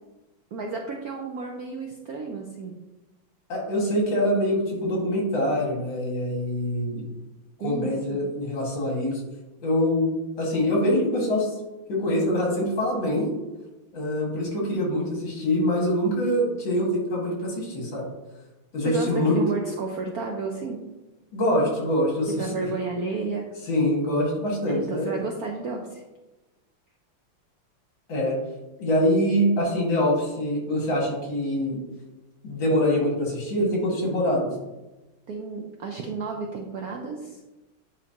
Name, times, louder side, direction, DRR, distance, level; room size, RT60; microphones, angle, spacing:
voice 1, 0.5-2.7 7.6-8.2 18.8-20.8 22.3-23.5 24.7-26.0 35.3-37.4, right 4 dB, 70° right, 1 dB, 0.9 m, -32 dB
voice 2, 3.5-7.1 7.6-9.2 9.6-10.1 10.4-11.6 11.9-13.3 13.9-18.1 18.7-19.4 21.3-22.3 23.7-25.1 28.1-28.4 28.8-31.8 32.4-34.5, left 1 dB, 65° left, -2 dB, 2.7 m, -24 dB
9.4 x 5.1 x 2.9 m, 1.1 s
omnidirectional pair, 2.3 m